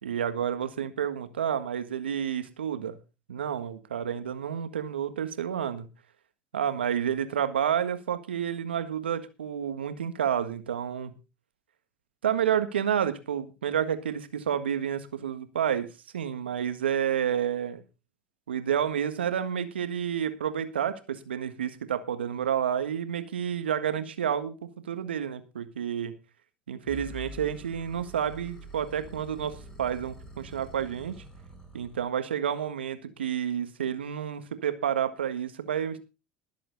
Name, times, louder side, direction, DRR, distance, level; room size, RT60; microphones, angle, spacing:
voice 1, 0.0-3.0 3.3-5.9 6.5-11.1 12.2-17.8 18.5-26.1 26.7-31.2 31.7-36.0, right 9 dB, 85° right, 1.6 m, -30 dB
sound 1, 26.9-32.1, right 1 dB, 10° left, 5.9 m, -46 dB
20.5 x 7.7 x 4.1 m
hypercardioid pair, 75°, 6 cm